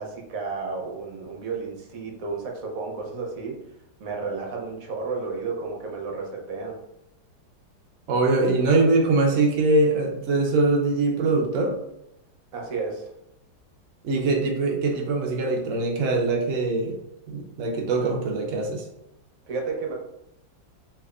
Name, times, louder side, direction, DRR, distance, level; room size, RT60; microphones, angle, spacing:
voice 1, 0.0-3.6 4.0-6.8 12.5-13.1 19.5-20.0, right 4 dB, 60° right, 0 dB, 1.0 m, -32 dB
voice 2, 8.1-11.8 14.0-17.0 17.3-18.9, right 3 dB, 80° right, 1 dB, 0.6 m, -22 dB
3.4 x 3.3 x 2.4 m, 0.83 s
omnidirectional pair, 2.1 m